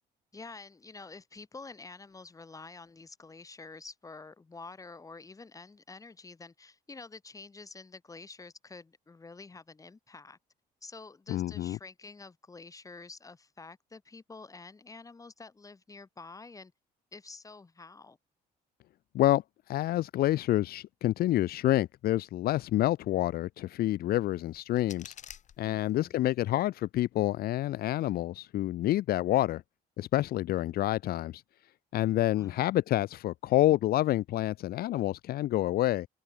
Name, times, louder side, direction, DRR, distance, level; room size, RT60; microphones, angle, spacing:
voice 1, 0.3-10.4 10.8-16.7 17.1-18.2 25.6-26.2 32.4-32.7, left 3 dB, 20° left, 2.4 m, -48 dB
voice 2, 11.3-11.8 19.1-19.4 19.7-25.1 25.6-29.6 30.0-31.4 31.9-36.1, left 14 dB, 65° left, 0.7 m, -28 dB
sound 1, 24.3-26.3, left 9 dB, 45° left, 1.5 m, -51 dB
cardioid pair, 110°, 17 cm